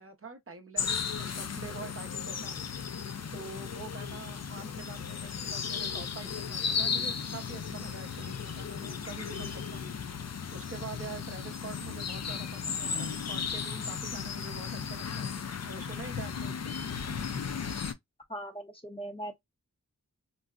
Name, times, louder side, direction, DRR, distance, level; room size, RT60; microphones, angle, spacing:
voice 1, 0.0-2.6 3.3-9.9 10.5-15.4 15.6-16.8, right 4 dB, 40° right, 0.7 m, -45 dB
sound 1, 0.8-17.9, left 6 dB, 50° left, 0.4 m, -35 dB
voice 2, 18.3-19.4, right 1 dB, 15° left, 0.7 m, -39 dB
3.9 x 2.0 x 2.3 m
wide cardioid pair, 50°, 33 cm